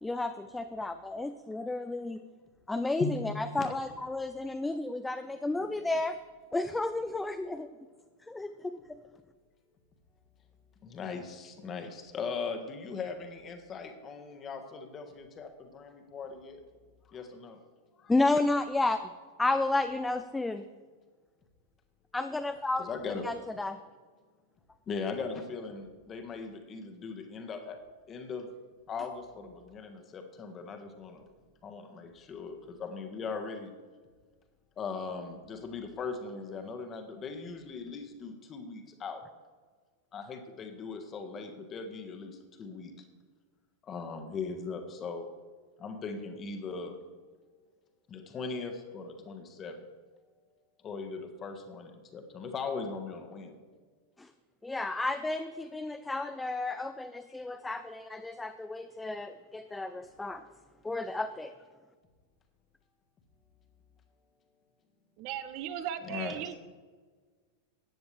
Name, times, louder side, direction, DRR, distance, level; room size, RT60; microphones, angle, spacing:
voice 1, 0.0-2.2 2.7-6.2 6.5-7.7 8.3-8.5 8.9-9.0 18.1-19.1 19.4-20.6 22.1-22.9 23.2-23.8 54.2-54.3 54.6-60.4 60.8-61.5, left 2 dB, 10° left, 9 dB, 0.5 m, -32 dB
voice 2, 10.8-16.6 17.1-17.6 18.0-18.1 22.8-23.3 24.9-27.8 28.1-28.5 28.9-31.3 31.6-33.7 34.8-39.2 40.1-42.9 43.8-45.3 45.8-47.0 48.1-49.8 50.8-53.6 66.0-66.5, left 5 dB, 25° left, 6 dB, 1.5 m, -39 dB
voice 3, 65.2-66.6, right 10 dB, 45° right, 10 dB, 0.7 m, -37 dB
14.5 x 9.7 x 3.3 m, 1.5 s
figure-of-eight pair, 90°, 0 cm